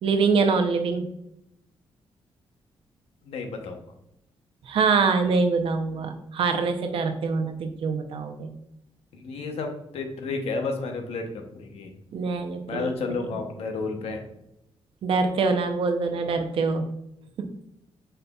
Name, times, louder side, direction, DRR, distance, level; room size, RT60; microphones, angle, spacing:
voice 1, 0.0-1.1 4.6-8.5 12.1-12.9 15.0-16.9 17.4-17.5, right 4 dB, 65° right, 6 dB, 0.6 m, -24 dB
voice 2, 3.3-3.8 9.1-11.9 12.7-14.2, left 4 dB, 80° left, 4 dB, 0.8 m, -31 dB
5.5 x 3.9 x 2.3 m, 0.81 s
wide cardioid pair, 145°, 10 cm